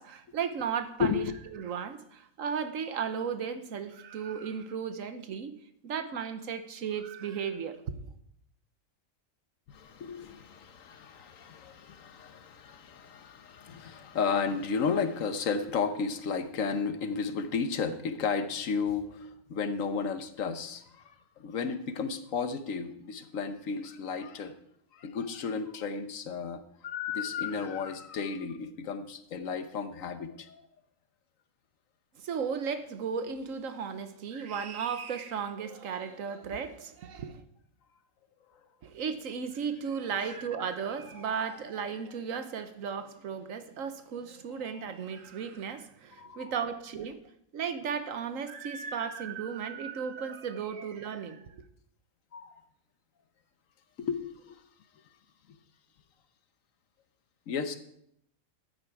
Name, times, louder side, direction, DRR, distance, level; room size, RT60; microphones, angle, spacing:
voice 1, 0.0-1.2 1.5-5.6 5.8-8.0 32.2-37.4 38.8-47.2 47.5-51.6, right 6 dB, 75° right, 1.3 m, -35 dB
voice 2, 1.0-1.4 9.7-24.5 24.9-30.6 40.2-40.3 41.2-41.3 44.7-44.9 46.2-46.8 50.2-50.4 50.8-50.9 52.3-52.5 54.0-54.6 57.5-57.8, left 5 dB, 75° left, 1.3 m, -33 dB
13.5 x 9.1 x 4.7 m
omnidirectional pair, 1.4 m